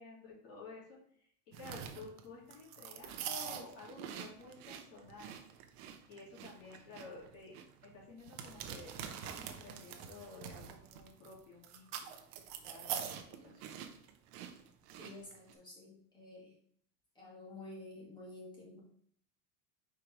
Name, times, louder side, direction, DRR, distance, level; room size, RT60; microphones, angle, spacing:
voice 1, 0.0-5.4 6.1-7.6 7.8-12.2 12.6-13.7, left 3 dB, 40° left, -4 dB, 2.7 m, -52 dB
sound 1, 1.5-15.5, right 9 dB, 60° right, 0.9 m, -45 dB
voice 2, 15.0-16.5 17.2-18.8, left 2 dB, 15° left, -4 dB, 1.9 m, -51 dB
4.8 x 4.5 x 5.0 m, 0.63 s
supercardioid pair, 160°, 35 cm